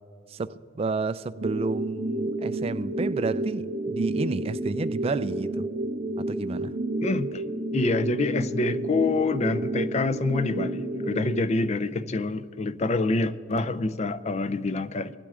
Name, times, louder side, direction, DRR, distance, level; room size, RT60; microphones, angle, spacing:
voice 1, 0.3-5.7 6.2-6.8, right 3 dB, 30° right, 0.3 m, -31 dB
sound 1, 1.4-11.4, right 2 dB, 70° right, 1.8 m, -30 dB
voice 2, 7.0-7.4 7.7-15.2, left 3 dB, 35° left, 0.4 m, -26 dB
23.0 x 12.0 x 3.6 m
head